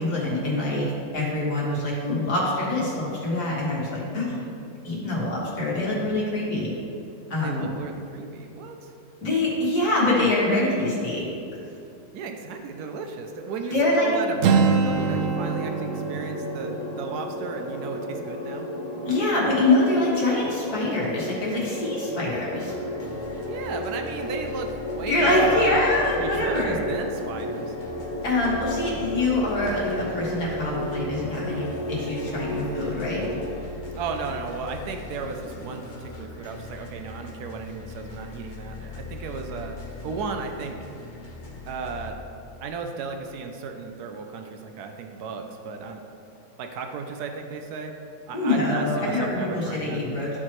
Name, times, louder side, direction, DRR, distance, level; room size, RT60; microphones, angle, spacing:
voice 1, 0.0-4.4 4.8-6.7 7.3-7.7 9.2-11.3 13.7-14.1 19.1-22.7 25.1-26.7 28.2-33.3 48.3-50.4, left 2 dB, 80° left, -6 dB, 2.4 m, -24 dB
voice 2, 7.4-8.9 12.1-13.7 14.0-18.7 23.5-25.8 26.2-27.8 33.9-39.8 40.0-40.8 41.6-42.2 42.6-46.0 46.6-47.9 48.3-50.0, right 4 dB, 90° right, 4 dB, 1.2 m, -34 dB
Acoustic guitar, 14.4-18.3, right 5 dB, 70° right, 0.8 m, -25 dB
sound 1, 14.9-33.5, left 1 dB, 25° right, 1.7 m, -34 dB
sound 2, 22.3-42.1, left 3 dB, 40° left, 0.8 m, -40 dB
13.5 x 4.5 x 3.1 m, 2.8 s
omnidirectional pair, 1.6 m